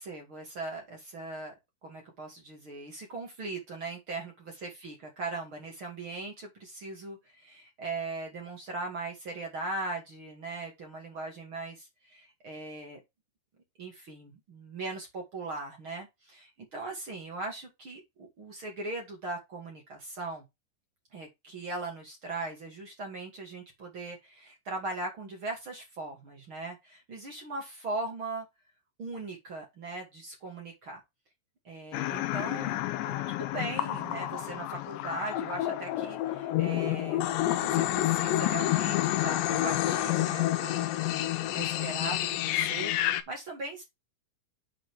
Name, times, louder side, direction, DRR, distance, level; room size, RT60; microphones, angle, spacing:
voice 1, 0.0-1.5 1.8-13.0 13.8-20.4 21.1-28.5 29.0-31.0 31.6-37.3 37.6-43.8, right 2 dB, 40° right, 1.9 m, -39 dB
sound 1, 31.9-43.2, left 14 dB, 85° left, 2.6 m, -29 dB
9.2 x 4.2 x 4.7 m
omnidirectional pair, 5.8 m